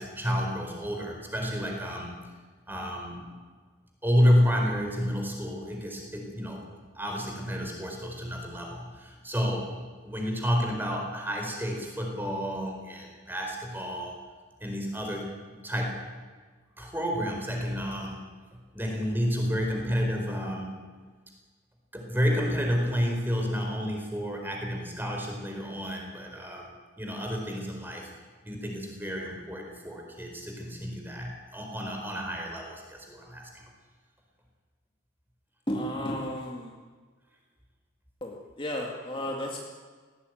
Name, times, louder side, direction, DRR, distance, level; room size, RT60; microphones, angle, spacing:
voice 1, 0.0-2.2 2.7-3.3 4.0-6.6 6.9-9.7 10.0-14.2 14.6-15.4 15.6-16.1 16.8-18.2 18.7-20.8 21.9-28.1 28.4-33.6, equal, 10° right, 1 dB, 4.5 m, -30 dB
voice 2, 35.7-36.7 38.2-39.6, equal, 25° left, -1 dB, 2.3 m, -33 dB
19.5 x 16.5 x 9.4 m, 1.4 s
head